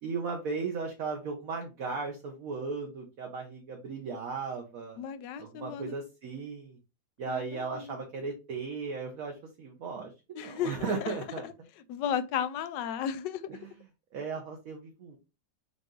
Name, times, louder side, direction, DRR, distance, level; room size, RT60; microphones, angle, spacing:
voice 1, 0.0-5.0 5.4-6.8 7.2-11.5 13.5-13.6 14.1-15.2, right 4 dB, 60° right, 1.1 m, -36 dB
voice 2, 5.0-5.9 7.3-8.0 10.4-11.1 11.4-11.5 11.9-13.6, left 8 dB, 80° left, 1.2 m, -34 dB
5.6 x 2.5 x 3.6 m
omnidirectional pair, 1.9 m